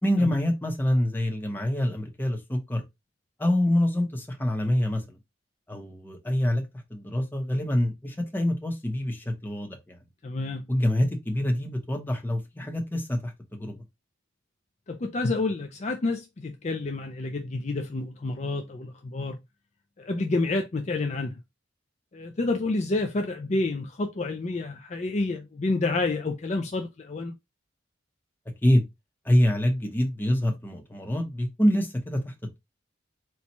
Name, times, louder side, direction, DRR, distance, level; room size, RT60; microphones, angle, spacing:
voice 1, 0.0-2.8 3.4-5.0 5.7-6.6 6.9-10.0 10.7-13.8 28.6-28.8 29.2-32.3, left 1 dB, 10° left, 0.8 m, -25 dB
voice 2, 10.2-10.6 14.9-19.4 20.0-21.4 22.1-27.3, left 2 dB, 35° left, 0.4 m, -29 dB
4.4 x 2.3 x 4.1 m
head